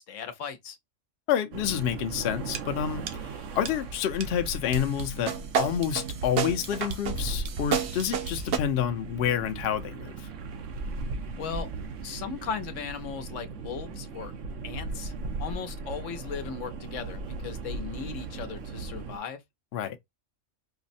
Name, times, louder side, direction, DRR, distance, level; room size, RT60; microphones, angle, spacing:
voice 1, 0.1-0.8 11.3-11.7 12.0-14.3 14.6-15.1 15.4-19.4, left 7 dB, 85° left, 1.1 m, -37 dB
voice 2, 1.3-10.3 19.7-20.0, left 9 dB, 65° left, 0.8 m, -29 dB
sound 1, 1.5-19.2, right 3 dB, 85° right, 1.0 m, -38 dB
sound 2, 2.5-2.6 3.1-3.3 3.6-3.7 4.2-4.3 4.7-8.6, right 7 dB, 65° right, 0.9 m, -31 dB
4.7 x 2.0 x 2.5 m
omnidirectional pair, 1.3 m